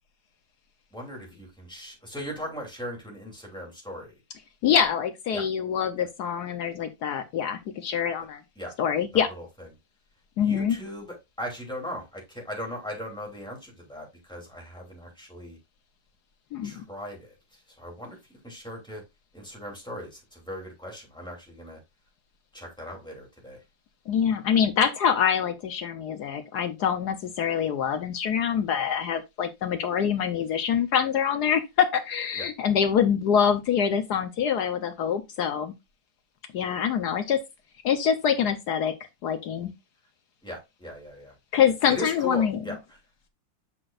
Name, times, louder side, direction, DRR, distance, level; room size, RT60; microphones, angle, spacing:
voice 1, 0.9-4.1 5.3-5.5 6.0-6.1 8.6-8.7 9.1-9.4 10.4-15.6 16.6-18.2 18.4-19.0 19.3-21.8 22.5-23.6 32.3-32.5 40.4-41.3 41.9-43.0, equal, ahead, 2.7 m, -38 dB
voice 2, 4.6-8.4 8.8-9.3 10.4-10.8 16.5-16.8 24.1-35.7 36.5-37.4 37.8-38.9 39.2-39.7 41.5-42.6, left 8 dB, 65° left, 1.1 m, -25 dB
7.7 x 6.0 x 2.4 m
omnidirectional pair, 2.2 m